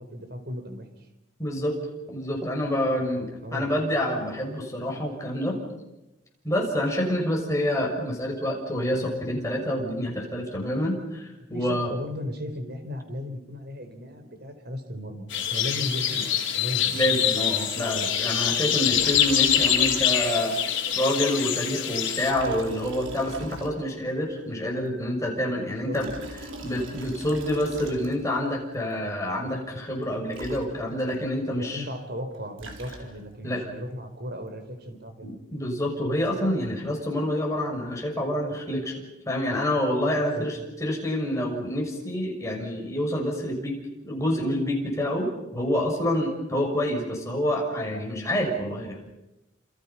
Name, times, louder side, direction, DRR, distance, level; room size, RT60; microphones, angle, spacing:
voice 1, 0.1-0.9 3.4-3.7 11.2-17.0 25.8-26.0 31.5-35.4 40.1-40.5, equal, 55° right, 6 dB, 4.6 m, -36 dB
voice 2, 1.4-1.8 2.1-5.6 6.4-11.9 16.9-20.6 20.9-26.1 26.6-31.8 33.4-33.7 35.2-43.8 44.0-49.1, left 1 dB, 15° left, 0 dB, 6.3 m, -27 dB
sound 1, 15.3-22.3, left 9 dB, 65° left, 3.8 m, -25 dB
Liquid, 18.9-20.4 20.7-20.8 22.2-24.1 25.7-28.4 30.0-30.1 30.3-31.1 32.3-33.4, right 1 dB, 75° right, 4.0 m, -40 dB
28.5 x 28.5 x 5.8 m, 0.97 s
head